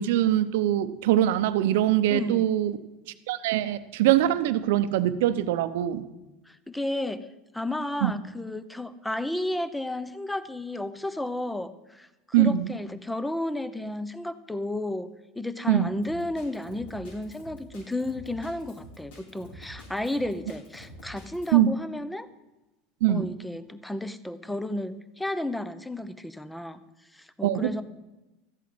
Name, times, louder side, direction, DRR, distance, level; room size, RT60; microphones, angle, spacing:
voice 1, 0.0-2.8 3.3-6.1 8.0-8.1 12.3-12.7 15.7-15.9 21.5-21.7 23.0-23.3 27.4-27.8, right 12 dB, 75° right, 13 dB, 0.8 m, -23 dB
voice 2, 2.1-2.5 6.5-7.2 7.5-12.1 12.4-15.1 15.4-22.3 23.1-26.8 27.1-27.8, left 1 dB, 5° left, 14 dB, 0.9 m, -32 dB
Drum kit, 16.0-21.6, equal, 80° left, 5.4 m, -47 dB
13.5 x 8.3 x 7.8 m, 1.0 s
supercardioid pair, 105°, 0 cm